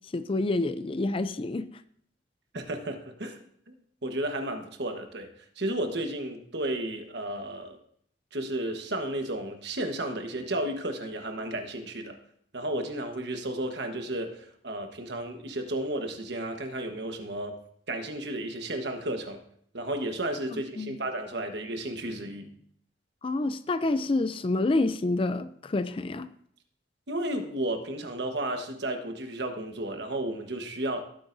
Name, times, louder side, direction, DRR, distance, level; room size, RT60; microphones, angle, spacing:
voice 1, 0.1-1.7 20.5-21.0 23.2-26.3, left 2 dB, 30° left, 0.4 m, -28 dB
voice 2, 2.5-3.4 3.7-3.8 4.0-5.3 5.6-7.8 8.3-12.2 12.5-17.6 17.9-19.4 19.7-22.5 27.1-31.0, right 1 dB, 65° right, 1.3 m, -33 dB
15.0 x 8.8 x 2.6 m
head